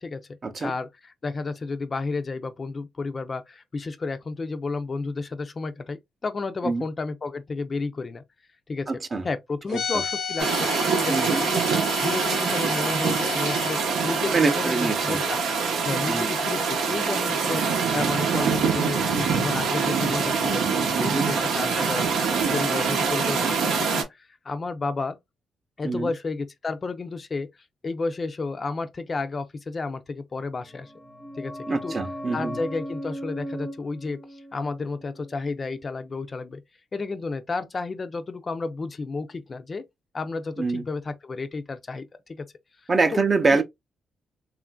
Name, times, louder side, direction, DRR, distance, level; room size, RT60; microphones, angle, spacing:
voice 1, 0.6-8.2 8.7-8.9 9.2-11.6 12.0-15.4 15.8-20.6 21.0-22.1 22.5-25.2 25.8-27.5 27.8-30.9 31.4-32.0 32.3-36.6 36.9-39.8 40.1-42.4 43.1-43.2, left 3 dB, 35° left, 0.4 m, -32 dB
voice 2, 8.9-9.3 11.1-11.4 14.3-15.2 16.1-16.3 21.0-21.3 25.8-26.1 31.7-32.6 40.6-40.8 42.9-43.6, right 3 dB, 35° right, 0.5 m, -24 dB
sound 1, 9.7-13.8, left 7 dB, 90° left, 0.6 m, -33 dB
sound 2, 10.4-24.0, right 5 dB, 90° right, 0.7 m, -24 dB
sound 3, 30.6-36.1 36.3-36.4, equal, 5° right, 0.7 m, -38 dB
3.0 x 2.4 x 2.2 m
cardioid pair, 100°, 0 cm